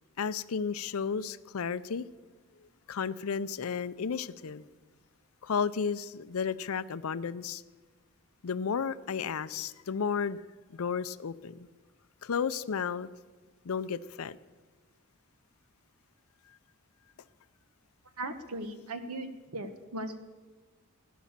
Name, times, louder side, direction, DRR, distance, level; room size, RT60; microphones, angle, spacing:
voice 1, 0.2-2.1 2.9-4.7 5.4-7.6 8.4-10.4 10.7-11.7 12.2-13.1 13.6-14.4, left 6 dB, 75° left, 0.5 m, -33 dB
voice 2, 18.2-20.2, right 1 dB, 80° right, 1.3 m, -38 dB
16.5 x 10.5 x 7.4 m
head